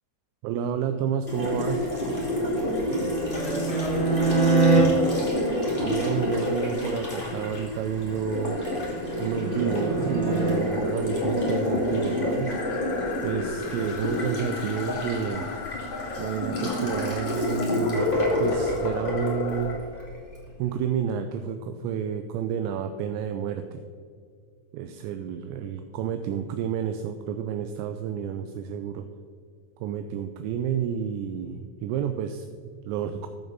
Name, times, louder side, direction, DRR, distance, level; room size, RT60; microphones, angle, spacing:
voice 1, 0.4-1.9 5.8-8.6 9.2-12.6 13.2-15.5 16.2-18.1 18.4-19.8 20.6-23.8 24.7-29.1 29.8-33.3, right 7 dB, 85° right, 7 dB, 2.7 m, -30 dB
Water tap faucet, 1.3-20.4, left 1 dB, 20° left, 1.5 m, -29 dB
sound 1, 2.6-4.8 8.2-10.6, right 4 dB, 50° right, 1.4 m, -25 dB
voice 2, 3.3-5.4 13.8-14.0, equal, 40° left, -4 dB, 0.9 m, -35 dB
sound 2, 12.5-19.8, left 6 dB, 80° left, 2.1 m, -38 dB
14.0 x 6.8 x 4.0 m, 2.2 s
omnidirectional pair, 5.4 m